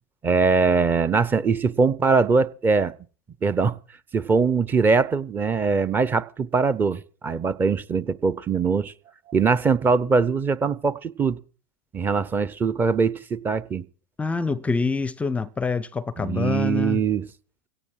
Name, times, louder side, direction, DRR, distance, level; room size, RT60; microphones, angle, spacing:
voice 1, 0.2-2.9 3.4-3.8 4.1-8.9 9.3-11.4 11.9-13.8 16.2-17.2, right 5 dB, 20° right, 0.8 m, -22 dB
voice 2, 14.2-17.0, left 4 dB, 15° left, 0.6 m, -26 dB
17.0 x 13.5 x 4.7 m
figure-of-eight pair, 95°, 10 cm